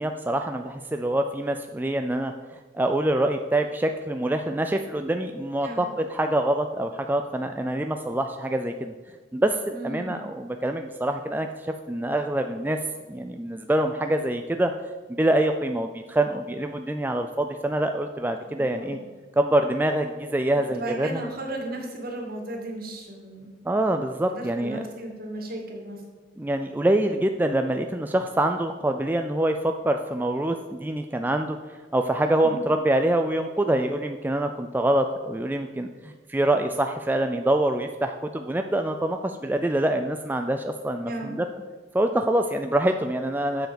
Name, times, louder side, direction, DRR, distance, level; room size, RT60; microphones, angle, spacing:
voice 1, 0.0-2.3 2.7-8.9 9.3-12.8 13.1-14.7 15.1-19.0 19.4-21.2 23.6-24.8 26.4-31.6 31.9-41.4 41.9-43.7, right 1 dB, 10° right, 5 dB, 0.4 m, -25 dB
voice 2, 9.7-10.2 18.4-19.0 20.5-23.6 24.3-26.0 32.4-32.6 41.0-41.4, right 1 dB, 55° right, 1 dB, 2.1 m, -35 dB
7.6 x 7.0 x 7.0 m, 1.4 s
head